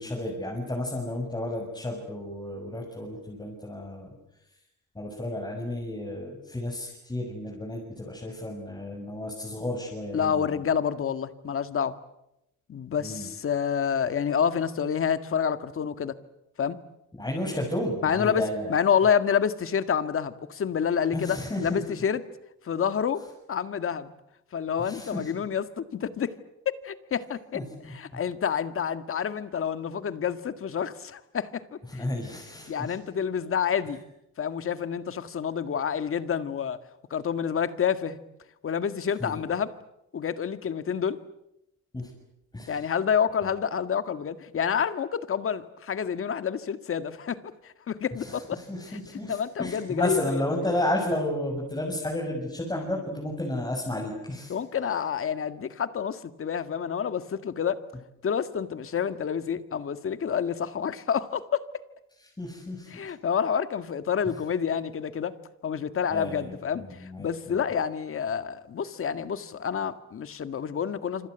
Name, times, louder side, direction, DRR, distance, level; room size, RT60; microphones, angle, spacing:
voice 1, 0.0-4.1 5.0-10.6 13.0-13.3 17.2-18.7 21.1-21.8 24.8-25.4 27.5-28.2 31.9-33.0 39.2-39.4 41.9-42.1 42.5-42.9 43.4-43.5 48.2-54.5 62.2-63.0 66.1-67.6, left 1 dB, 15° left, -3 dB, 7.1 m, -32 dB
voice 2, 10.1-12.0 12.7-16.2 16.6-16.8 18.0-18.4 18.7-22.2 22.6-23.2 23.5-24.1 24.5-26.3 26.7-27.6 27.9-31.6 31.9-32.0 32.7-34.0 34.4-36.8 37.1-38.2 38.6-39.7 40.1-41.2 42.7-47.4 47.6-48.6 49.3-50.4 54.5-57.8 58.2-61.7 62.9-65.4 65.6-71.3, left 7 dB, 45° left, 11 dB, 1.9 m, -28 dB
27.5 x 25.5 x 8.1 m, 0.87 s
cardioid pair, 115°, 30 cm